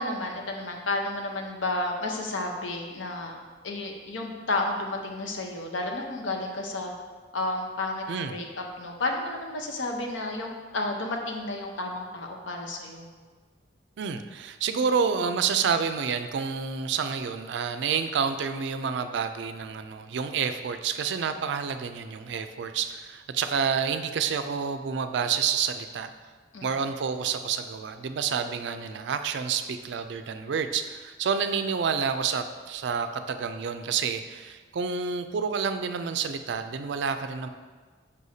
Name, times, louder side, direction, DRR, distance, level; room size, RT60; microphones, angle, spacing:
voice 1, 0.0-3.4 3.6-6.9 7.3-8.4 8.8-13.1 26.5-26.7, left 2 dB, 80° left, 2 dB, 0.8 m, -31 dB
voice 2, 8.1-8.4 14.0-26.1 26.6-37.5, right 6 dB, 65° right, 9 dB, 0.4 m, -29 dB
6.4 x 5.4 x 2.7 m, 1.5 s
head